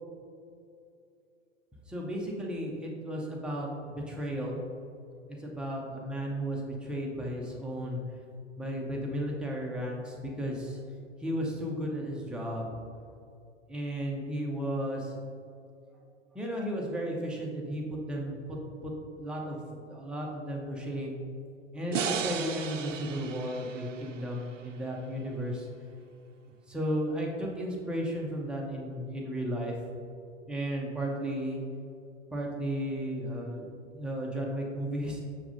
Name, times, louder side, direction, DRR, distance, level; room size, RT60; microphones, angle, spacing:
voice 1, 1.9-4.6 5.3-8.0 8.6-10.8 11.2-12.8 13.7-15.3 16.3-18.9 19.2-21.2 21.7-25.7 26.7-29.8 30.5-31.6 32.3-35.2, equal, 5° right, -2 dB, 0.5 m, -34 dB
sound 1, 21.9-25.1, right 6 dB, 80° right, 0.5 m, -36 dB
7.0 x 6.1 x 2.6 m, 2.5 s
figure-of-eight pair, 105°, 37 cm